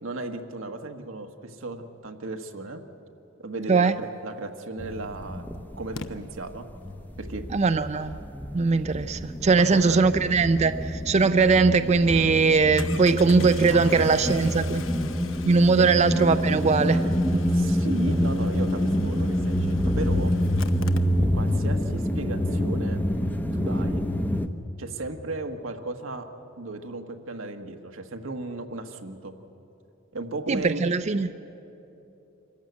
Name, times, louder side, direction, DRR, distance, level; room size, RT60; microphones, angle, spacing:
voice 1, 0.0-2.8 3.4-5.5 5.8-6.7 7.2-7.4 9.6-10.0 13.6-14.5 15.8-16.0 17.5-20.3 21.2-23.0 23.5-24.1 24.8-26.3 26.6-29.3 30.1-30.8, right 2 dB, 90° right, 5 dB, 1.4 m, -35 dB
Engine starting, 4.5-4.6 6.0-6.1 11.2-11.3 11.6-11.7 12.8-21.6 21.9-22.0 22.2-22.3, left 5 dB, 75° left, 0.9 m, -43 dB
sound 1, 4.8-6.4 6.7-24.5, equal, 10° left, 0.7 m, -27 dB
voice 2, 7.5-8.2 8.5-14.8 15.5-17.1 17.3-17.4 30.5-31.3, right 4 dB, 35° right, 10 dB, 0.4 m, -21 dB
25.0 x 14.5 x 9.5 m, 3.0 s
head